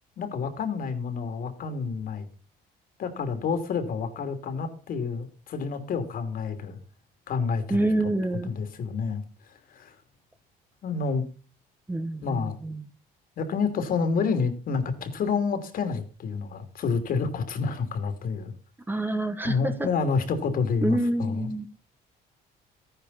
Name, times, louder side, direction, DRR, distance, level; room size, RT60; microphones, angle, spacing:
voice 1, 0.2-2.3 3.0-6.8 7.3-7.9 8.4-9.2 9.7-9.9 10.8-11.2 12.2-12.6 13.4-18.5 19.4-21.5, left 5 dB, 60° left, 8 dB, 2.9 m, -29 dB
voice 2, 7.7-8.5 11.9-12.9 18.9-19.9 20.8-21.7, right 1 dB, 10° right, 8 dB, 1.5 m, -27 dB
13.5 x 10.5 x 4.2 m, 0.35 s
cardioid pair, 110°, 17 cm